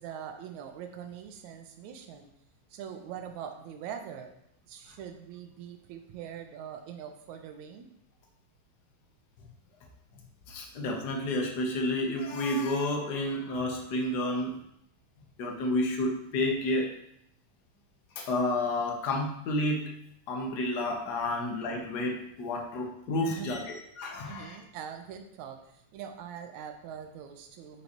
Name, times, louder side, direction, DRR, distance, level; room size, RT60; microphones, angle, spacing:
voice 1, 0.0-2.3 2.7-4.3 4.6-7.9 21.3-21.4 23.3-23.5 24.3-27.8, right 8 dB, 80° right, 6 dB, 2.1 m, -43 dB
voice 2, 10.5-14.5 15.4-16.9 18.2-19.9 20.3-23.6 24.0-24.6, left 1 dB, 75° left, 1 dB, 0.9 m, -30 dB
8.8 x 5.4 x 3.0 m, 0.75 s
omnidirectional pair, 3.3 m